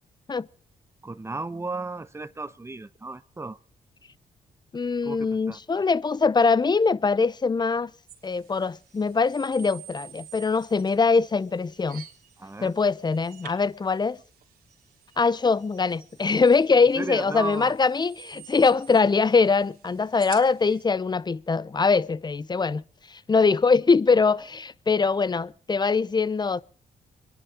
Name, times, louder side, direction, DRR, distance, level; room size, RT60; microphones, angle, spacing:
voice 1, 1.0-3.6 5.0-5.6 12.4-12.7 17.0-17.7, right 3 dB, 15° right, 1.0 m, -35 dB
voice 2, 4.7-7.9 8.2-12.0 12.6-14.2 15.2-22.8 23.1-26.6, left 4 dB, 25° left, 0.7 m, -22 dB
sound 1, 8.1-20.8, right 10 dB, 75° right, 2.8 m, -50 dB
24.5 x 11.0 x 4.9 m
supercardioid pair, 60°, 16 cm